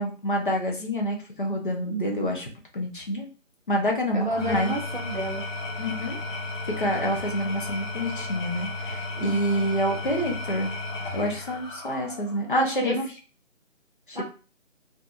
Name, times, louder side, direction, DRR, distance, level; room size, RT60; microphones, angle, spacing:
voice 1, 0.0-2.5 2.7-3.3 3.7-4.7 5.8-6.2 6.6-10.7 11.1-12.9 14.1-14.2, equal, 40° left, 0 dB, 0.7 m, -27 dB
voice 2, 1.9-2.3 4.1-5.5 9.1-9.7 12.5-13.1 14.1-14.2, right 2 dB, 40° right, -1 dB, 0.6 m, -31 dB
Engine / Tools, 4.2-12.5, left 2 dB, 85° left, 1.3 m, -34 dB
2.6 x 2.4 x 2.4 m, 0.36 s
figure-of-eight pair, 165°, 38 cm